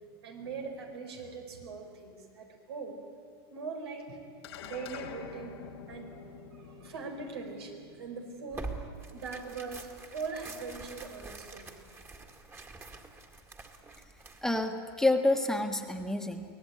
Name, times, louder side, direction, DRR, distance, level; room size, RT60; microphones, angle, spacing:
voice 1, 0.2-3.0 3.5-4.2 4.6-5.6 5.9-6.1 6.6-8.7 9.1-11.7, right 4 dB, 90° right, 3 dB, 4.7 m, -41 dB
sound 1, 4.4-9.1, left 7 dB, 80° left, 2.2 m, -47 dB
Tearing, 8.5-14.7, right 3 dB, 20° right, 2.1 m, -45 dB
voice 2, 14.4-16.4, left 2 dB, 5° left, 4 dB, 1.4 m, -28 dB
24.0 x 17.5 x 9.3 m, 2.3 s
supercardioid pair, 125°, 13 cm